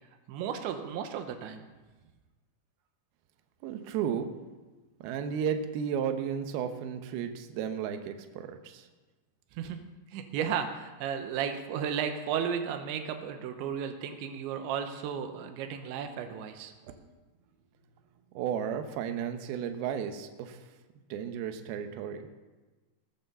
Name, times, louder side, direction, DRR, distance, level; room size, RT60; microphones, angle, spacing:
voice 1, 0.3-1.6 9.5-9.8 10.1-16.7, right 8 dB, 90° right, 6 dB, 3.3 m, -34 dB
voice 2, 3.6-4.3 5.0-8.9 18.3-20.6 21.1-22.3, right 8 dB, 70° right, 6 dB, 2.6 m, -33 dB
19.5 x 6.7 x 6.8 m, 1.2 s
omnidirectional pair, 5.2 m